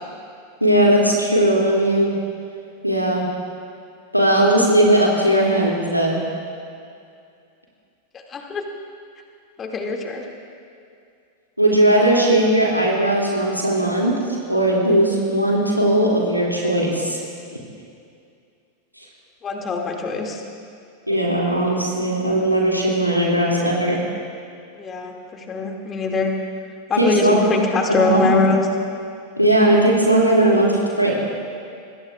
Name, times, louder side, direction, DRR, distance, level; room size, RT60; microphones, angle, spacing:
voice 1, 0.6-2.1 2.8-3.3 4.1-6.2 11.6-14.1 14.5-17.2 21.1-24.0 27.0-27.5 28.0-28.3 29.4-31.2, right 1 dB, 90° right, -4 dB, 2.5 m, -18 dB
voice 2, 8.3-8.6 9.6-10.2 19.4-20.4 24.8-26.3 26.9-28.7, left 3 dB, 25° left, 2 dB, 2.3 m, -22 dB
26.0 x 21.0 x 2.4 m, 2.4 s
figure-of-eight pair, 90°, 0 cm